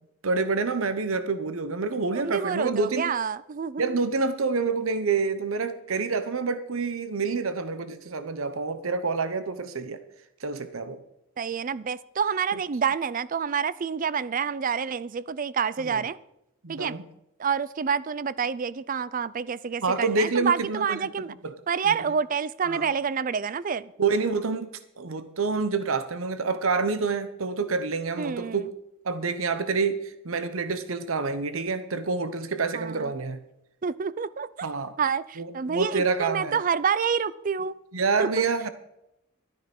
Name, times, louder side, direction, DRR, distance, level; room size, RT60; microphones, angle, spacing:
voice 1, 0.2-3.1 3.8-10.0 10.4-11.0 15.8-16.0 16.6-17.0 19.8-21.1 21.4-21.5 21.9-22.0 22.7-22.9 24.0-28.7 29.0-33.4 34.6-34.9 35.4-36.6 37.9-38.7, right 4 dB, 80° right, 12 dB, 1.0 m, -27 dB
voice 2, 2.2-4.0 11.4-16.2 16.7-16.9 17.4-21.3 21.7-23.9 28.2-28.7 32.7-33.1 33.8-34.5 35.0-37.7 38.2-38.4, right 6 dB, 40° right, 18 dB, 0.4 m, -28 dB
12.5 x 9.8 x 5.3 m, 0.83 s
head